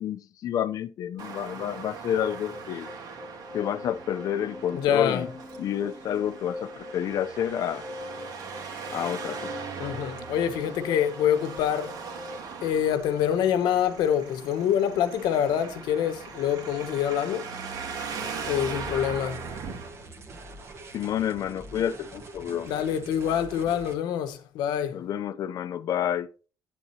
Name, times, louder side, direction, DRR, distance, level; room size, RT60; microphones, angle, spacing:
voice 1, 0.0-2.9 3.5-5.3 5.6-7.9 8.9-9.5 20.9-22.7 24.9-26.3, left 10 dB, 55° left, 0.7 m, -29 dB
Traffic noise roadway noise, 1.2-19.9, right 5 dB, 65° right, 2.2 m, -39 dB
sound 1, 2.2-12.4, left 2 dB, ahead, 0.6 m, -43 dB
voice 2, 4.7-5.3 9.8-12.0 12.6-17.5 18.5-19.5 22.6-25.0, left 9 dB, 85° left, 1.2 m, -26 dB
sound 2, 18.1-23.9, right 2 dB, 40° right, 1.8 m, -44 dB
11.0 x 8.6 x 2.9 m
cardioid pair, 145°, 7 cm